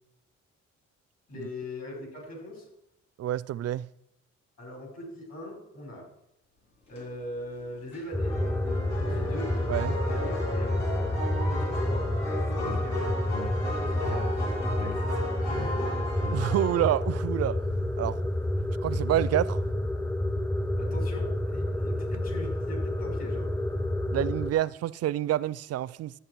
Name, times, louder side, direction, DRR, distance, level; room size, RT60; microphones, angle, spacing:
voice 1, 1.3-2.7 4.6-6.1 6.9-8.3 9.0-9.6 10.1-10.7 11.5-12.1 12.5-13.1 13.7-14.4 14.8-15.6 20.8-23.5, left 1 dB, 55° left, 5.2 m, -41 dB
voice 2, 3.2-3.9 9.7-10.0 16.3-17.7 18.0-18.2 18.8-19.6 24.1-26.1, right 12 dB, 55° right, 0.4 m, -28 dB
sound 1, 6.6-19.7, equal, 90° left, 3.6 m, -52 dB
sound 2, 8.1-24.5, left 1 dB, 5° left, 0.6 m, -29 dB
sound 3, 8.2-16.9, left 1 dB, 70° left, 4.7 m, -35 dB
12.5 x 8.6 x 4.6 m
cardioid pair, 90°, 30 cm